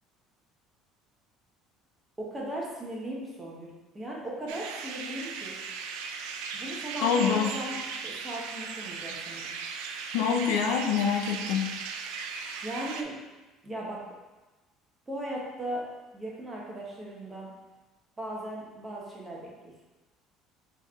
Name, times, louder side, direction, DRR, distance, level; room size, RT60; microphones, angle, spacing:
voice 1, 2.2-5.6 6.5-7.8 8.0-9.5 12.6-13.2 13.6-14.1 15.1-15.9 16.1-17.5 18.2-19.8, right 1 dB, 15° right, -4 dB, 0.9 m, -37 dB
sound 1, 4.5-13.0, right 5 dB, 90° right, 0.4 m, -37 dB
voice 2, 7.0-7.6 10.1-11.7, left 7 dB, 90° left, 2 dB, 0.5 m, -26 dB
4.3 x 3.1 x 3.5 m, 1.1 s
cardioid pair, 160°, 0 cm